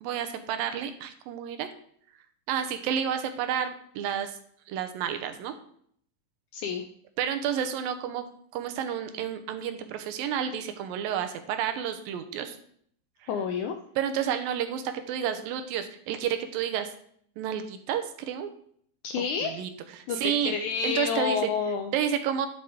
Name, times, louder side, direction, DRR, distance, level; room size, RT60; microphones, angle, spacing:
voice 1, 0.0-1.7 2.5-4.4 4.7-5.5 7.2-12.6 13.2-13.3 14.0-16.9 17.4-18.5 19.2-20.6 20.8-21.4 21.9-22.5, right 9 dB, 90° right, 8 dB, 2.5 m, -30 dB
voice 2, 6.5-6.9 13.3-13.8 19.0-19.7 20.1-21.9, left 6 dB, 80° left, 6 dB, 1.8 m, -29 dB
11.0 x 6.1 x 3.6 m, 0.63 s
omnidirectional pair, 4.1 m